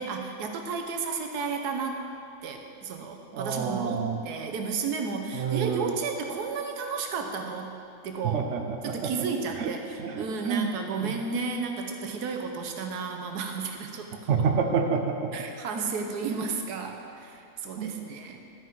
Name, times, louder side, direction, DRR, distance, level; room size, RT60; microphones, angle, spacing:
voice 1, 0.0-2.0 2.4-7.8 8.0-8.4 8.8-14.1 15.3-18.4, right 4 dB, 80° right, 4 dB, 1.3 m, -33 dB
voice 2, 3.3-4.2 5.3-5.9 8.2-9.1 9.6-9.7 10.0-10.7 11.0-11.2 14.3-15.3 17.8-18.1, right 6 dB, 60° right, 4 dB, 0.8 m, -28 dB
12.0 x 5.8 x 4.6 m, 2.6 s
omnidirectional pair, 1.7 m